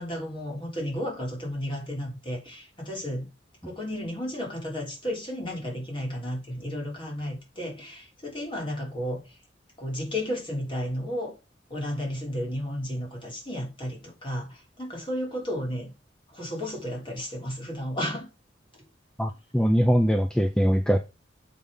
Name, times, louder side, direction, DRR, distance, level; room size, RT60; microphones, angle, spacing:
voice 1, 0.0-3.3 3.6-9.4 9.8-11.3 11.7-15.9 16.3-18.3, equal, 30° left, 3.4 m, -33 dB
voice 2, 19.2-21.0, equal, 5° left, 0.5 m, -22 dB
6.9 x 5.5 x 5.0 m
head